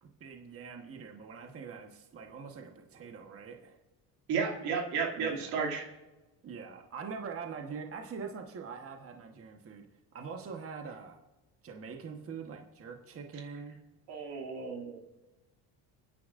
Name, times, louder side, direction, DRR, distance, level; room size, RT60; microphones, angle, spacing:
voice 1, 0.0-3.8 5.2-5.6 6.4-9.8 10.1-11.2 11.6-13.8, right 5 dB, 35° right, 3 dB, 1.3 m, -44 dB
voice 2, 4.3-5.9 14.1-15.0, right 5 dB, 85° right, 0 dB, 2.7 m, -33 dB
29.5 x 10.0 x 2.5 m, 1.1 s
cardioid pair, 140°, 39 cm